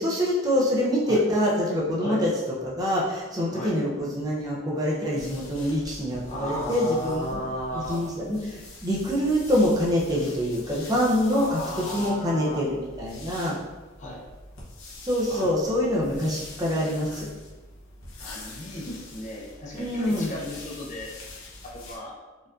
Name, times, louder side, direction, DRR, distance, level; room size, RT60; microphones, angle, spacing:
voice 1, 0.0-2.3 2.6-7.4 7.7-13.6 15.0-17.3 19.7-20.4, equal, 20° right, -4 dB, 0.5 m, -25 dB
sound 1, 5.2-22.0, left 2 dB, 80° left, 0.8 m, -44 dB
voice 2, 6.2-8.0 11.3-12.6 14.0-14.2 15.3-15.5 18.2-21.1 21.6-22.1, equal, 35° left, -2 dB, 0.6 m, -35 dB
4.3 x 2.5 x 2.4 m, 1.2 s
head